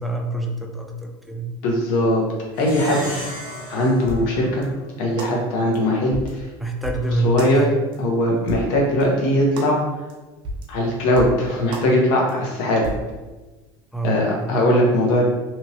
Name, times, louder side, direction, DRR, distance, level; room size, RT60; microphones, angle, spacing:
voice 1, 0.0-1.5 6.6-7.4 13.9-14.2, right 2 dB, ahead, 1 dB, 0.3 m, -25 dB
voice 2, 1.6-2.2 2.6-3.0 3.7-4.7 5.0-6.5 7.2-7.7 8.0-9.8 10.7-12.9 14.0-15.2, left 1 dB, 85° left, -2 dB, 0.8 m, -20 dB
Plucked string instrument, 2.5-5.4, equal, 65° left, 1.3 m, -35 dB
sound 1, 3.5-3.6 4.1-4.3 4.6-4.7 5.2-5.3 5.7-5.8 6.1-6.3 6.8-7.0 7.4-7.5 7.9-8.0 8.5-8.7 9.0-9.1 9.6-9.7 10.1-10.2 10.4-10.7 11.2-11.4 11.7-11.9 12.3-12.4 12.8-13.0, right 1 dB, 50° right, 0.5 m, -31 dB
2.9 x 2.7 x 2.6 m, 1.2 s
cardioid pair, 140°, 11 cm